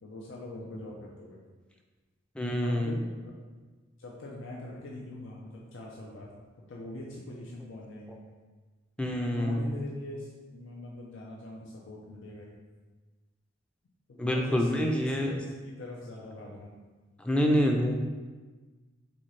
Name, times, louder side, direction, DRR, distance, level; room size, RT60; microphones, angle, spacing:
voice 1, 0.0-1.4 2.6-3.4 4.0-6.3 6.7-8.2 9.3-12.6 14.1-15.4 15.6-16.7, left 1 dB, 80° left, -3 dB, 0.6 m, -42 dB
voice 2, 2.4-3.0 9.0-9.7 14.2-15.3 17.2-18.0, equal, 5° left, 1 dB, 0.4 m, -26 dB
4.1 x 3.6 x 3.2 m, 1.3 s
head